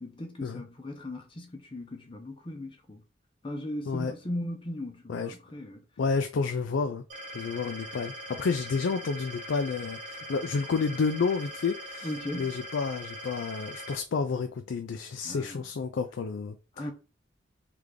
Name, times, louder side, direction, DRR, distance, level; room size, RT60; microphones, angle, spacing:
voice 1, 0.0-3.0 3.4-5.8 12.0-12.5 15.2-15.7 16.7-16.9, left 1 dB, 25° left, 0.6 m, -38 dB
voice 2, 6.0-7.0 7.3-12.1 12.3-16.6, left 4 dB, 70° left, 0.4 m, -30 dB
sound 1, 7.1-14.0, equal, 40° right, 1.1 m, -41 dB
3.3 x 3.3 x 3.7 m
head